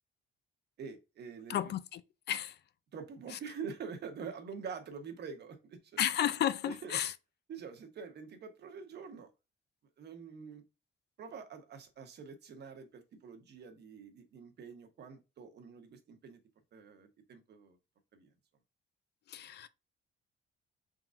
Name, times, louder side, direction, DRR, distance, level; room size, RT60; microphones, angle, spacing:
voice 1, 0.8-1.8 2.9-6.0 6.6-7.0 7.5-9.3 10.0-10.6 11.2-16.4 16.7-17.8 18.1-18.3, right 6 dB, 55° right, 1.0 m, -46 dB
voice 2, 1.5-2.0 2.3-2.6 6.0-7.1 19.3-19.7, left 11 dB, 55° left, 0.4 m, -32 dB
4.5 x 3.8 x 2.5 m
cardioid pair, 145°, 21 cm